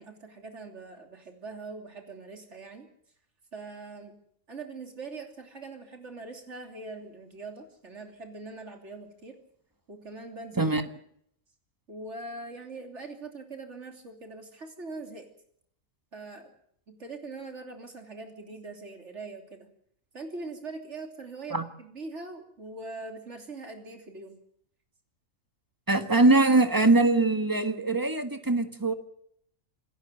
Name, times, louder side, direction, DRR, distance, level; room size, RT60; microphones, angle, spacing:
voice 1, 0.0-2.9 3.5-4.1 4.5-9.4 9.9-10.7 11.9-15.3 16.1-16.5 16.9-19.7 20.1-24.4, right 3 dB, 55° right, 4 dB, 3.4 m, -42 dB
voice 2, 25.9-28.9, right 2 dB, 15° right, 8 dB, 1.5 m, -22 dB
27.0 x 14.5 x 7.9 m, 0.69 s
omnidirectional pair, 1.4 m